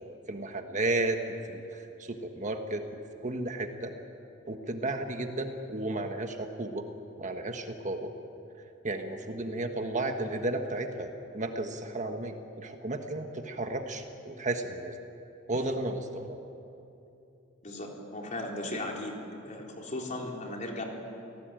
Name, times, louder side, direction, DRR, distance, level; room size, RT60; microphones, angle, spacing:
voice 1, 0.0-3.9 4.5-6.9 7.2-8.1 8.8-14.9 15.5-16.4, right 2 dB, 40° right, 5 dB, 1.5 m, -33 dB
voice 2, 17.6-19.1 19.4-20.8, left 1 dB, 40° left, 0 dB, 4.0 m, -36 dB
28.5 x 18.0 x 9.1 m, 2.8 s
head